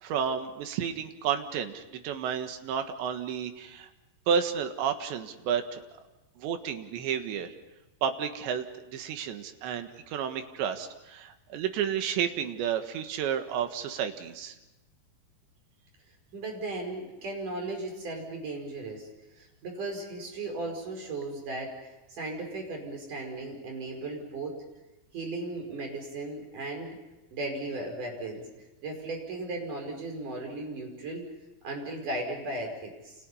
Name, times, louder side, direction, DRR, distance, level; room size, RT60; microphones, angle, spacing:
voice 1, 0.0-3.9 4.3-5.8 6.4-7.5 8.0-14.6, right 8 dB, 80° right, 7 dB, 3.9 m, -31 dB
voice 2, 16.3-19.1 19.3-24.6 25.1-27.0 27.3-28.5 28.8-31.2 31.6-33.1, right 2 dB, 45° right, 2 dB, 6.5 m, -36 dB
29.5 x 29.0 x 5.6 m, 1.0 s
omnidirectional pair, 5.0 m